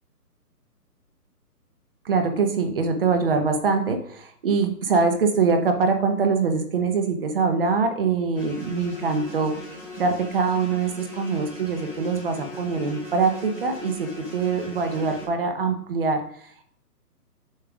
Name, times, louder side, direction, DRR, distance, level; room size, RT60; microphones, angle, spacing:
voice 1, 2.0-9.5 10.0-16.7, right 4 dB, 35° right, 6 dB, 0.9 m, -23 dB
sound 1, 8.3-15.3, left 1 dB, 5° left, 3.0 m, -39 dB
7.2 x 6.4 x 2.4 m, 0.63 s
hypercardioid pair, 155°, 48 cm